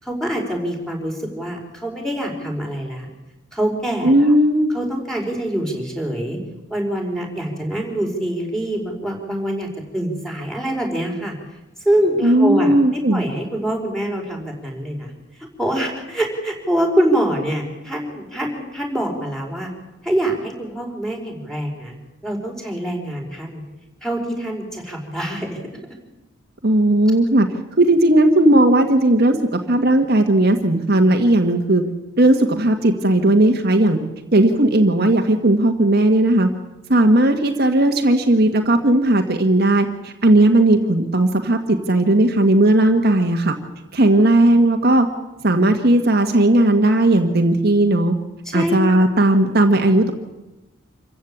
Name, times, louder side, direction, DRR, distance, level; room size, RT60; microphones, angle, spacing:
voice 1, 0.0-3.1 3.5-4.3 4.7-6.4 6.7-11.3 11.8-15.1 15.6-19.7 20.0-21.9 22.2-23.6 24.0-25.6 48.4-49.1, right 1 dB, 5° left, 1 dB, 5.1 m, -24 dB
voice 2, 4.0-4.7 12.2-13.2 26.6-27.5 27.8-31.8 32.2-34.0 34.3-36.5 36.9-43.5 43.9-45.1 45.4-48.1 48.5-50.1, right 1 dB, 50° right, 4 dB, 1.7 m, -16 dB
27.0 x 15.0 x 8.8 m, 1.0 s
head